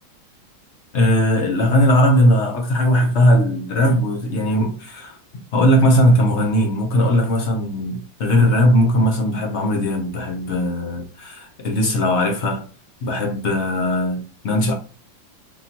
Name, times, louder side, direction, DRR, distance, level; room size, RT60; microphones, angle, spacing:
voice 1, 0.9-5.2 5.5-12.6 13.0-14.7, equal, 55° left, 0.7 m, -18 dB
4.0 x 3.7 x 2.8 m
omnidirectional pair, 2.1 m